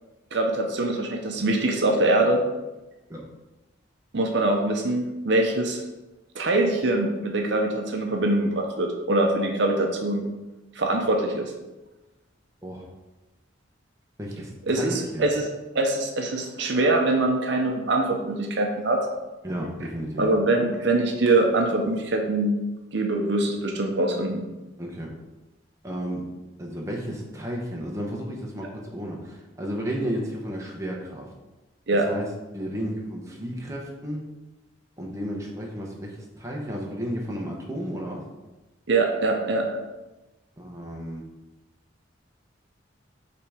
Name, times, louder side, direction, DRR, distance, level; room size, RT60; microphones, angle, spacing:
voice 1, 0.3-2.4 4.1-5.8 6.3-10.3 10.8-11.5 14.7-15.5 15.7-19.1 20.2-22.5 22.9-24.4 31.9-32.1 38.9-39.7, right 2 dB, 60° right, 2 dB, 0.7 m, -23 dB
voice 2, 14.2-15.3 19.4-20.2 24.8-25.1 25.8-26.2 26.6-31.2 32.1-32.3 32.5-34.2 35.0-38.2 40.6-41.2, equal, 15° right, -2 dB, 0.9 m, -33 dB
5.7 x 3.5 x 4.9 m, 1.1 s
head